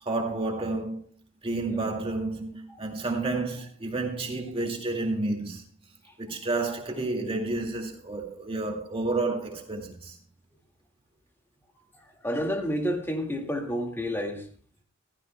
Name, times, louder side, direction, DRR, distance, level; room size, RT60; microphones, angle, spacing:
voice 1, 0.0-1.1 1.4-5.6 6.2-10.2, right 2 dB, 30° right, 2.2 m, -30 dB
voice 2, 12.2-14.5, equal, 10° left, 1.9 m, -29 dB
15.5 x 15.0 x 2.2 m
head